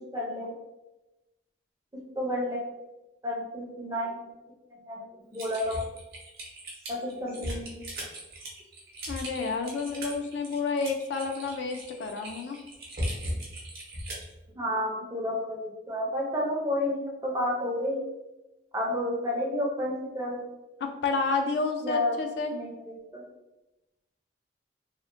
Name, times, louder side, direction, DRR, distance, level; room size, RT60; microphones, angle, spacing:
voice 1, 0.1-0.5 1.9-2.7 3.2-4.3 4.9-5.1 5.3-5.8 6.9-7.8 14.5-18.0 18.7-20.4 21.8-22.2 22.5-23.2, left 1 dB, 20° right, -3 dB, 0.5 m, -31 dB
Typing, 5.3-14.3, equal, 55° right, 0.7 m, -38 dB
voice 2, 9.1-12.6 20.8-22.5, left 4 dB, 70° left, 5 dB, 0.3 m, -30 dB
2.8 x 2.0 x 2.4 m, 0.99 s
head